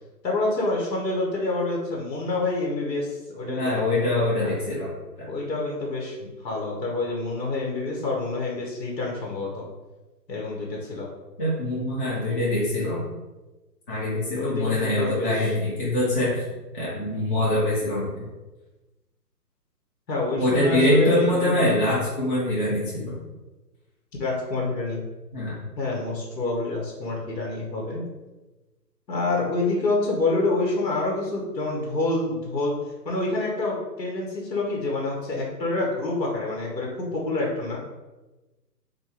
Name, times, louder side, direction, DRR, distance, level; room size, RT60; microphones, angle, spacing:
voice 1, 0.2-3.8 4.4-4.6 5.3-9.7 10.3-11.1 12.2-12.3 14.3-15.5 20.1-21.7 24.2-25.0 25.8-28.0 29.1-32.7 33.0-37.8, left 2 dB, 75° left, -2 dB, 1.1 m, -27 dB
voice 2, 3.4-4.9 5.2-5.3 11.4-13.0 13.9-16.4 16.7-18.2 20.3-23.2 25.3-25.5, left 1 dB, 30° left, -7 dB, 0.9 m, -24 dB
3.4 x 2.2 x 2.9 m, 1.1 s
hypercardioid pair, 150°, 50 cm